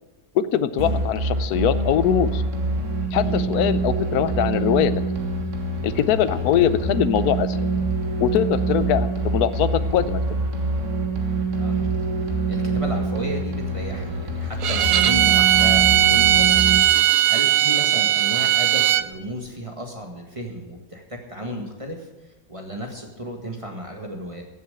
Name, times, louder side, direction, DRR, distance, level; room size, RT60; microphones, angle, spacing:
voice 1, 0.3-2.4 3.1-4.9 5.8-7.7 8.2-10.2, left 10 dB, 75° left, 13 dB, 1.2 m, -22 dB
sound 1, 0.8-16.8, right 2 dB, 55° right, 1.8 m, -25 dB
voice 2, 11.6-11.9 12.2-22.1 22.5-24.4, equal, 20° right, 2 dB, 1.8 m, -34 dB
Bowed string instrument, 14.6-19.1, right 13 dB, 70° right, 1.0 m, -18 dB
15.0 x 7.5 x 8.1 m, 1.2 s
omnidirectional pair, 1.6 m